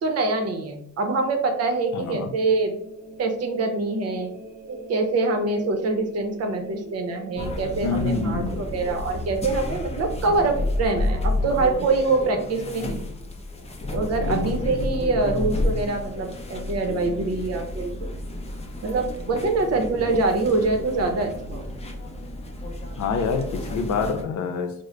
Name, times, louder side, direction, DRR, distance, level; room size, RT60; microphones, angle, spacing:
voice 1, 0.0-2.7 3.2-4.3 4.7-13.0 13.9-18.1 18.8-21.6, right 3 dB, 55° right, 5 dB, 0.7 m, -25 dB
sound 1, 0.9-12.6, right 2 dB, 30° right, 1.3 m, -45 dB
voice 2, 1.9-2.3 7.8-8.7 14.3-14.8 23.0-24.7, left 4 dB, 65° left, 5 dB, 0.6 m, -27 dB
sound 2, 7.4-24.2, left 2 dB, 20° left, 0.5 m, -31 dB
3.2 x 2.1 x 3.7 m, 0.72 s
cardioid pair, 90°, 30 cm